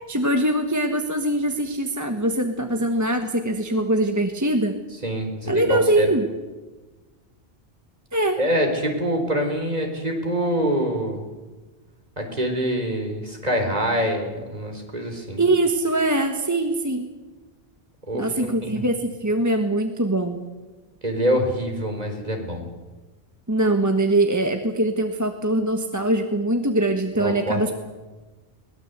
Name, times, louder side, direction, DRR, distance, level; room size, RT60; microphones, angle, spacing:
voice 1, 0.0-4.7 5.5-6.3 8.1-8.4 15.4-17.1 18.2-20.4 23.5-27.7, right 1 dB, 15° right, 4 dB, 1.4 m, -22 dB
voice 2, 5.0-6.1 8.4-11.2 12.2-15.4 18.1-18.8 21.0-22.7 27.2-27.7, equal, 40° right, 3 dB, 4.0 m, -25 dB
22.0 x 19.5 x 8.1 m, 1.2 s
omnidirectional pair, 1.0 m